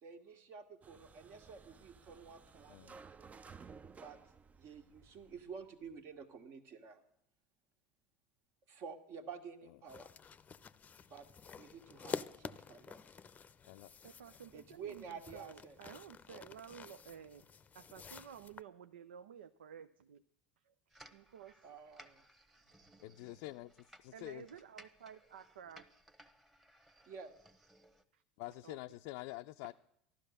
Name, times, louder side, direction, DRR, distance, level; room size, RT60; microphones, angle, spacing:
voice 1, 0.0-3.0 3.9-4.2 4.6-7.0 8.7-10.1 11.1-11.3 11.5-13.0 14.5-15.8 21.6-22.2 27.1-27.3, right 6 dB, 50° right, 7 dB, 1.8 m, -50 dB
sound 1, 0.8-6.0, right 5 dB, 25° right, 0.6 m, -57 dB
voice 2, 2.7-3.0 13.7-13.9 23.0-24.5 28.4-29.7, left 19 dB, 60° left, 5 dB, 0.5 m, -47 dB
sound 2, 9.9-18.6, left 6 dB, 25° left, 0.7 m, -49 dB
voice 3, 14.0-17.5 17.7-20.2 20.6-20.7 21.1-21.8 22.8-22.9 23.3-23.4 24.1-25.8 28.1-28.2 28.6-28.8, right 8 dB, 80° right, 11 dB, 0.6 m, -53 dB
sound 3, 20.9-28.0, right 1 dB, 5° right, 1.2 m, -62 dB
14.5 x 12.0 x 6.6 m, 0.75 s
hypercardioid pair, 80°, 6 cm